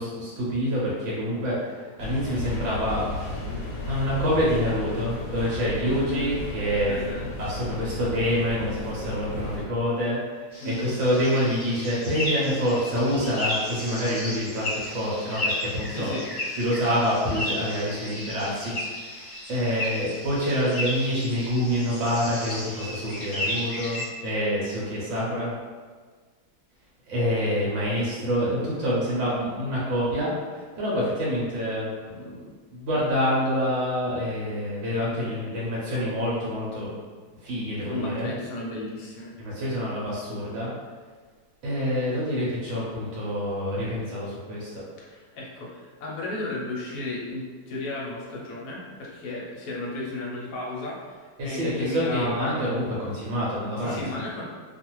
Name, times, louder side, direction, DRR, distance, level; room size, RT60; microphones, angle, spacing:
voice 1, 0.0-3.1 3.3-7.0 7.4-16.1 16.6-19.2 19.5-25.5 27.1-30.3 30.8-32.3 32.7-36.9 37.4-38.3 39.4-40.7 41.6-44.8 51.4-54.2, equal, 55° right, -6 dB, 0.9 m, -27 dB
sound 1, 2.0-9.6, left 1 dB, 80° left, 1.2 m, -34 dB
voice 2, 5.8-6.4 6.9-7.3 10.6-11.0 15.9-16.3 37.8-39.3 45.1-51.2 51.4-52.6 53.8-54.5, left 2 dB, 65° left, -3 dB, 1.0 m, -34 dB
sound 2, 10.5-24.0, left 1 dB, 40° left, 0.9 m, -34 dB
2.5 x 2.4 x 2.9 m, 1.5 s
omnidirectional pair, 1.7 m